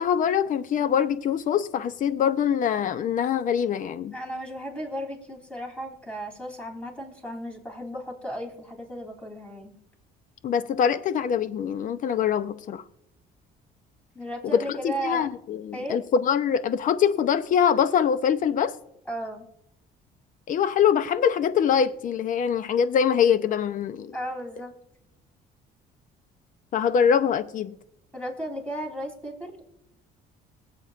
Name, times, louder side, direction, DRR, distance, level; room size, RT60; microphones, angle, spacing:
voice 1, 0.0-4.1 10.4-12.8 14.5-18.7 20.5-24.2 26.7-27.8, left 8 dB, 50° left, 0.6 m, -23 dB
voice 2, 4.1-9.7 14.1-15.3 15.7-16.0 19.1-19.5 24.1-24.7 28.1-29.6, equal, 5° left, 3.1 m, -35 dB
21.0 x 7.8 x 2.4 m
cardioid pair, 110°, 17 cm